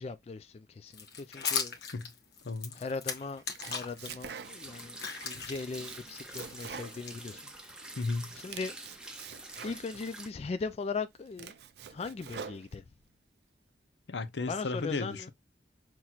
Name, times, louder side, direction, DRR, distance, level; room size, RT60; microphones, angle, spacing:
voice 1, 0.0-1.8 2.7-7.4 7.8-7.9 8.3-8.7 9.6-11.5 11.9-12.8 14.5-15.3, left 4 dB, 35° left, 0.3 m, -39 dB
sound 1, 0.9-4.1 4.6-7.7, left 6 dB, 65° left, 1.1 m, -38 dB
voice 2, 2.4-2.8 8.0-8.3 14.1-15.3, left 3 dB, 80° left, 0.6 m, -34 dB
Domestic sounds home sounds, 3.3-4.9 5.2-7.8 8.1-10.1 10.7-10.8 11.2-13.1, right 6 dB, 65° right, 0.4 m, -46 dB
sound 2, 4.4-10.3, right 2 dB, 5° right, 0.6 m, -47 dB
5.7 x 3.0 x 2.4 m
head